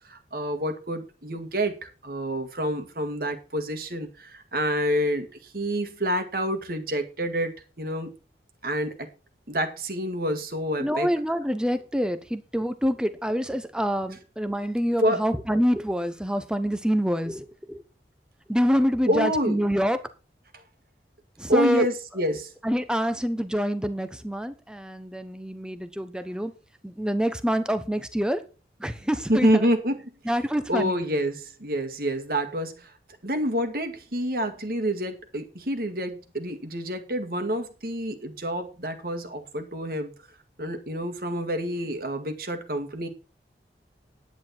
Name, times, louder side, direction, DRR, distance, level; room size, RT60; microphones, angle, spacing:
voice 1, 0.1-5.3 5.5-8.1 8.6-9.1 9.5-11.1 15.0-15.2 19.1-19.6 21.5-22.5 29.3-30.0 30.7-32.9 33.2-40.1 40.6-43.1, equal, 55° right, 7 dB, 2.0 m, -27 dB
voice 2, 10.8-17.8 18.5-20.0 21.4-21.9 22.6-26.5 26.8-28.4 28.8-29.7 30.2-31.0, equal, 5° right, 10 dB, 1.0 m, -26 dB
10.5 x 9.5 x 4.5 m, 0.32 s
head